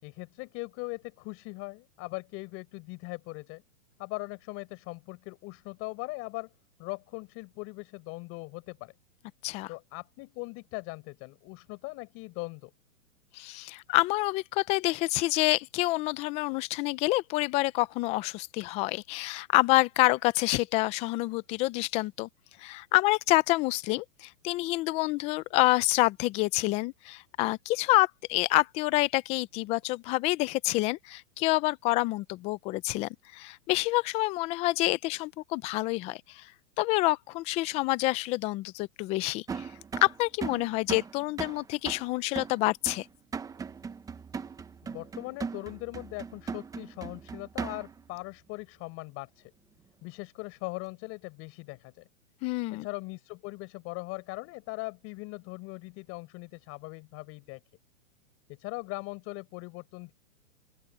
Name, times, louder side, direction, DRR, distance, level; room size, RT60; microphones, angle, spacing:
voice 1, 0.0-3.6 4.0-6.5 6.8-8.9 9.7-12.7 44.8-49.5 50.0-52.0 52.7-57.6 58.5-60.1, left 25 dB, 35° left, 4.6 m, -40 dB
voice 2, 13.3-22.3 22.6-36.5 36.8-39.7 40.0-43.1 52.4-52.9, left 20 dB, 15° left, 0.4 m, -27 dB
sound 1, 39.5-48.1, right 5 dB, 10° right, 0.9 m, -39 dB
open air
hypercardioid pair, 140°, 40 cm